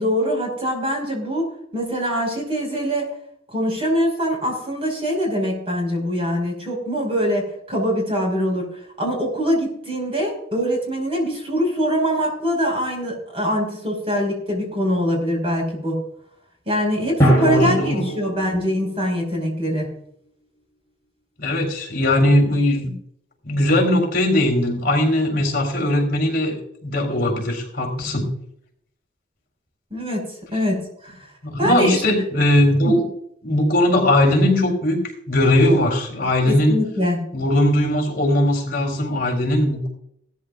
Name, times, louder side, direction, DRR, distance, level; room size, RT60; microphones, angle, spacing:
voice 1, 0.0-3.2 3.5-16.0 16.7-19.9 29.9-31.2 31.6-32.0 32.8-33.0 36.5-37.2, equal, 30° right, 0 dB, 5.3 m, -23 dB
Drum, 17.2-19.5, right 1 dB, 15° left, 4.5 m, -22 dB
voice 2, 17.3-18.0 21.4-22.9 23.4-26.6 26.8-28.3 31.4-33.1 33.4-35.0 35.3-36.8 37.3-39.9, left 1 dB, 50° left, 1 dB, 3.7 m, -19 dB
17.5 x 13.5 x 2.5 m, 0.70 s
head